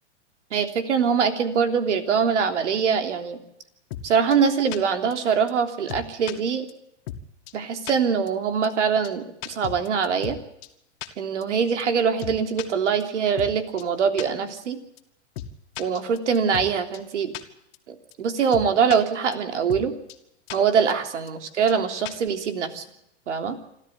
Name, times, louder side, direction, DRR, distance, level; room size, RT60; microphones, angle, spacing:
voice 1, 0.5-3.4 4.0-6.7 7.5-10.4 11.2-14.8 15.8-17.3 17.9-19.9 20.5-22.8 23.3-23.6, right 6 dB, 75° right, 7 dB, 3.4 m, -23 dB
sound 1, 3.9-4.0 4.3-4.4 4.7-4.8 5.1-5.2 5.5-5.6 5.9-6.3 6.7-6.8 7.1-7.2 7.5-7.6 7.8-7.9 8.3-8.4 8.6-8.7 9.0-9.1 9.4-10.4 10.6-10.7 11.0-11.1 11.4-11.5 11.8-11.9 12.2-12.7 13.0-13.1 13.4-13.5 13.8-13.9 14.2-14.3 14.6-14.7 15.0-15.1 15.4-15.5 15.8-16.7 16.9-17.0 17.3-17.4 17.7-17.8 18.1-18.2 18.5-19.0 19.3-19.4 19.7-19.8 20.1-20.2 20.5-20.6 20.9-21.0 21.3-21.4 21.7-21.8 22.1-22.3, left 12 dB, 55° left, 2.4 m, -35 dB
27.0 x 13.0 x 9.4 m, 0.78 s
hypercardioid pair, 130°, 36 cm